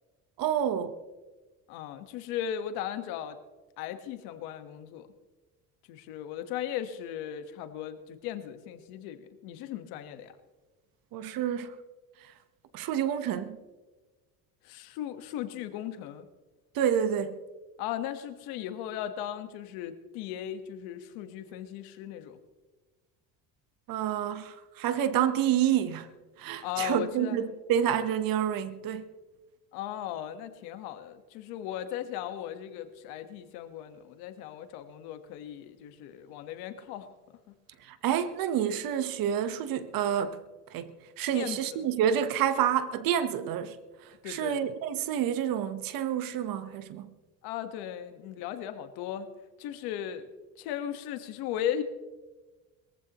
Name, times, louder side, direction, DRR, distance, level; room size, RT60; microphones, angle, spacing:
voice 1, 0.4-0.9 11.1-11.8 12.7-13.6 16.7-17.4 23.9-26.1 26.4-29.0 37.8-40.4 40.7-40.9 41.2-43.8 44.0-47.1, right 9 dB, 65° right, 1.2 m, -28 dB
voice 2, 1.7-3.4 3.8-5.1 5.9-10.3 14.6-16.3 17.8-22.4 26.6-27.4 29.7-37.1 37.5-37.6 41.3-41.8 44.2-44.6 47.4-49.3 49.6-50.3 50.6-51.8, left 10 dB, 85° left, 1.5 m, -37 dB
22.0 x 15.0 x 3.1 m
cardioid pair, 110°, 36 cm